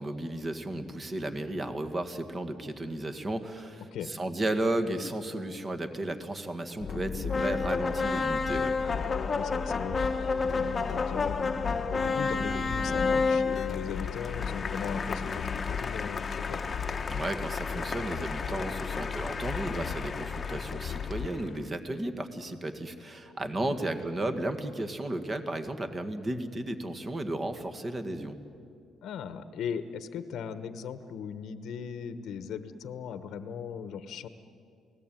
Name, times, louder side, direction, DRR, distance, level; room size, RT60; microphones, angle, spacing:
voice 1, 0.0-8.7 17.1-28.4, right 1 dB, 25° right, 8 dB, 1.8 m, -34 dB
sound 1, 6.8-21.3, left 6 dB, 45° left, 1.2 m, -36 dB
sound 2, 7.3-21.5, left 4 dB, 25° left, 1.1 m, -32 dB
voice 2, 9.3-11.5 11.9-16.6 23.6-23.8 29.0-34.3, left 7 dB, 70° left, 11 dB, 1.1 m, -38 dB
29.0 x 19.0 x 9.1 m, 2.4 s
cardioid pair, 135°, 0 cm